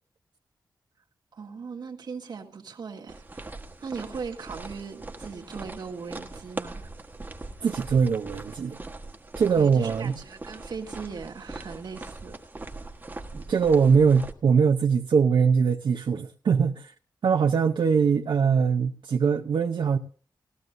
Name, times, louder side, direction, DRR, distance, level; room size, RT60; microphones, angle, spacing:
voice 1, 1.3-3.5 3.8-6.9 9.6-12.4 13.3-13.5, right 5 dB, 65° right, 1.7 m, -39 dB
sound 1, 3.1-14.3, right 2 dB, 25° right, 1.3 m, -41 dB
voice 2, 7.6-8.8 9.4-10.1 13.5-16.9 17.2-20.0, right 6 dB, 85° right, 0.8 m, -22 dB
19.0 x 14.0 x 2.6 m
wide cardioid pair, 165°, 8 cm